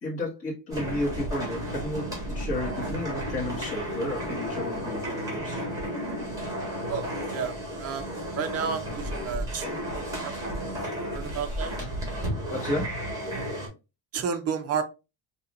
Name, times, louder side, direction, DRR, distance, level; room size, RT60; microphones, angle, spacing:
voice 1, 0.0-5.6 11.0-11.2 12.5-12.9, left 1 dB, 25° left, 1.7 m, -32 dB
sound 1, 0.7-13.7, equal, 5° right, 1.6 m, -33 dB
voice 2, 6.9-8.1 8.4-10.4 11.1-11.8 14.1-14.8, right 6 dB, 30° right, 0.4 m, -32 dB
5.5 x 2.9 x 2.5 m
cardioid pair, 175°, 50 cm